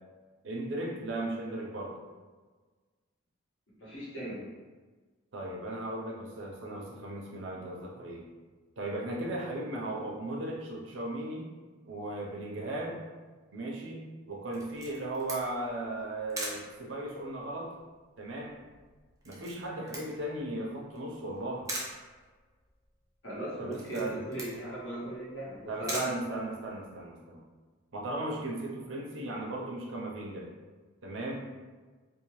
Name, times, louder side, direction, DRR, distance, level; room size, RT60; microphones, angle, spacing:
voice 1, 0.4-1.9 5.3-8.3 8.8-11.4 11.9-13.0 13.5-17.7 18.2-18.6 19.2-21.7 23.6-24.2 25.7-27.4 27.9-30.5 31.0-31.5, right 1 dB, 70° right, -2 dB, 0.6 m, -36 dB
voice 2, 3.8-4.4 23.2-26.0, right 1 dB, 75° left, -8 dB, 1.2 m, -38 dB
Camera, 14.5-27.0, right 1 dB, 15° right, 0.4 m, -43 dB
2.7 x 2.1 x 3.0 m, 1.4 s
head